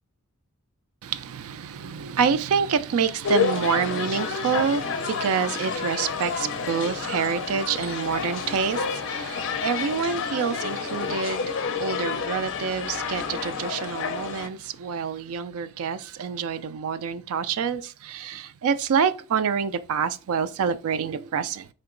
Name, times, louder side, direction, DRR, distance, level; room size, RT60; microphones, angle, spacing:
voice 1, 1.0-21.7, right 6 dB, 70° right, 0.4 m, -27 dB
sound 1, 3.2-14.5, left 6 dB, 60° left, 0.5 m, -30 dB
4.4 x 2.9 x 3.7 m
head